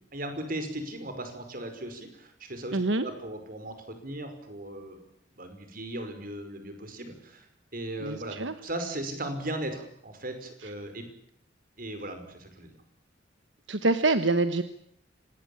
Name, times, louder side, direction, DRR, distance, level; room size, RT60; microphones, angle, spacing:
voice 1, 0.1-5.0 5.4-7.5 7.7-11.1 11.8-12.7, right 1 dB, 50° right, 7 dB, 5.4 m, -37 dB
voice 2, 2.7-3.1 8.0-8.5 13.7-14.6, right 2 dB, 80° right, 11 dB, 1.3 m, -25 dB
25.5 x 19.5 x 8.8 m, 0.68 s
head